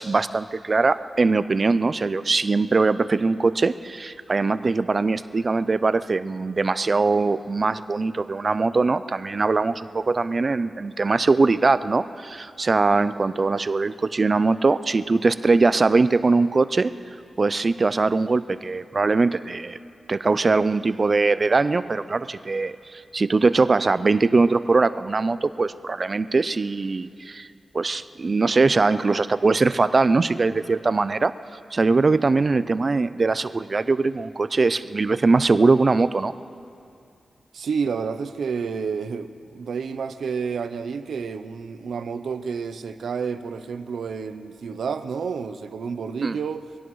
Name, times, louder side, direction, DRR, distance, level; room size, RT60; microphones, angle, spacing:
voice 1, 0.0-16.9 17.4-19.8 20.1-27.5 27.7-31.3 31.7-36.3 46.2-46.4, right 3 dB, 35° right, 13 dB, 0.4 m, -21 dB
voice 2, 37.5-46.7, right 5 dB, 90° right, 10 dB, 0.6 m, -30 dB
23.5 x 17.0 x 3.1 m, 2.5 s
wide cardioid pair, 165°, 0 cm